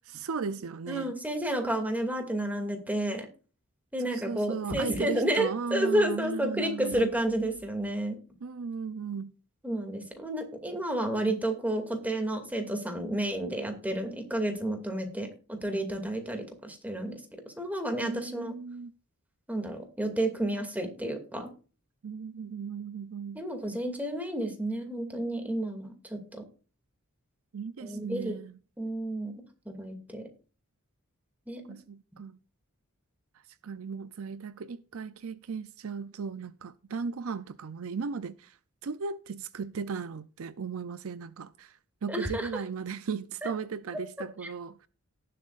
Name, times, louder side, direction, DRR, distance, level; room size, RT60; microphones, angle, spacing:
voice 1, 0.1-1.1 4.0-7.1 8.4-9.3 18.0-18.9 22.0-23.4 27.5-28.6 31.7-32.4 33.6-38.6 38.8-44.8, right 5 dB, 70° right, 0.5 m, -36 dB
voice 2, 0.9-3.3 3.9-8.2 9.6-15.3 15.6-18.5 19.5-21.5 23.3-26.4 27.8-28.4 28.8-29.3 29.7-30.2 31.5-31.6 42.1-42.5 43.4-43.5 44.4-44.5, right 1 dB, 5° right, 2.4 m, -31 dB
18.0 x 7.5 x 2.5 m
head